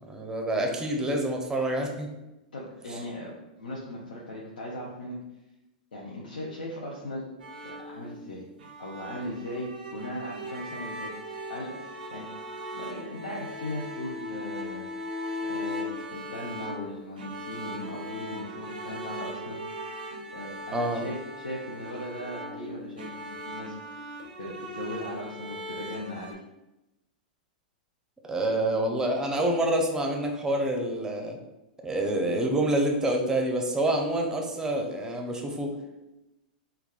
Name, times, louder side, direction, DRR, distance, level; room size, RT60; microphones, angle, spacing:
voice 1, 0.0-2.1 2.9-3.0 20.7-21.0 28.2-31.4 31.8-35.8, right 1 dB, 10° right, 2 dB, 0.5 m, -27 dB
voice 2, 2.5-5.2 5.9-7.2 7.6-8.4 8.8-11.1 11.5-12.3 12.7-14.8 15.5-20.0 20.3-24.0 24.4-26.4, left 1 dB, 90° left, -4 dB, 0.5 m, -38 dB
sound 1, 7.4-26.3, equal, 85° right, 0.5 m, -39 dB
3.4 x 2.2 x 2.3 m, 0.97 s
hypercardioid pair, 115°, 5 cm